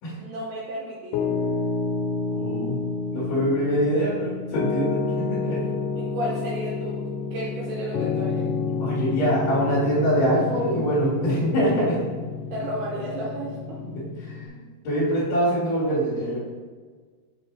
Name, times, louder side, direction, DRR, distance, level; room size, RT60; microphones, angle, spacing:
voice 1, 0.2-1.3 6.0-8.5 12.5-13.8, right 1 dB, 75° right, -5 dB, 3.0 m, -33 dB
Piano, 1.1-14.5, left 4 dB, 80° left, 2.6 m, -29 dB
voice 2, 2.3-2.8 3.1-5.6 8.8-12.0 13.8-16.4, right 1 dB, 50° left, -11 dB, 2.4 m, -24 dB
6.5 x 6.5 x 3.3 m, 1.5 s
omnidirectional pair, 4.9 m